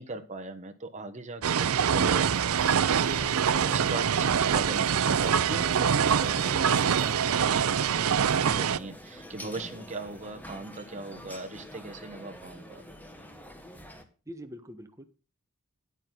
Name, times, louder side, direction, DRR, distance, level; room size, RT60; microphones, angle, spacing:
voice 1, 0.0-2.2 3.1-6.7 6.9-12.8, right 2 dB, 35° right, 5 dB, 1.2 m, -39 dB
sound 1, 1.4-8.8, right 7 dB, 75° right, 0.5 m, -24 dB
sound 2, 1.9-14.0, left 1 dB, 10° left, 1.4 m, -45 dB
voice 2, 14.3-15.0, equal, 15° right, 6 dB, 1.1 m, -44 dB
9.9 x 8.9 x 3.9 m, 0.35 s
head